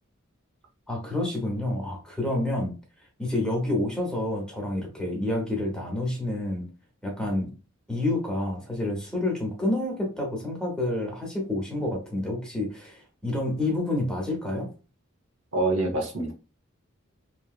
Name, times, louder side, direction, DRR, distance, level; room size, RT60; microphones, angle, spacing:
voice 1, 0.9-2.7 3.2-6.7 7.0-7.5 7.9-14.7, left 1 dB, 5° left, -1 dB, 0.8 m, -28 dB
voice 2, 15.5-16.3, right 2 dB, 70° right, 0 dB, 1.0 m, -25 dB
2.9 x 2.8 x 2.4 m, 0.32 s
head